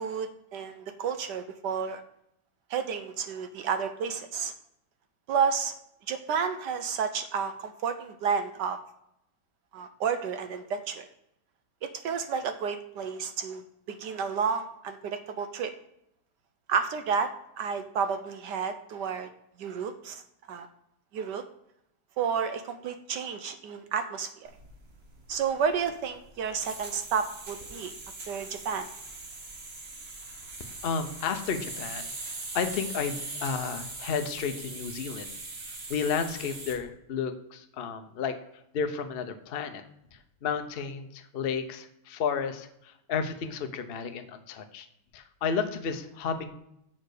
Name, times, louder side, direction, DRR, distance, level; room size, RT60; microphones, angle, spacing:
voice 1, 0.0-2.0 2.7-4.5 5.3-5.7 6.1-8.8 9.7-11.1 11.8-13.6 13.9-15.7 16.7-19.3 19.6-20.2 20.5-20.7 21.1-21.4 22.2-24.5 25.3-27.9 28.3-28.9, right 6 dB, 70° right, 9 dB, 1.1 m, -31 dB
sound 1, 24.5-36.8, right 3 dB, 35° right, 1.3 m, -41 dB
voice 2, 30.8-35.4 35.7-38.4 38.7-39.8 40.1-44.9 45.1-46.5, left 6 dB, 85° left, 7 dB, 0.5 m, -32 dB
7.3 x 6.7 x 4.8 m, 0.78 s
omnidirectional pair, 2.2 m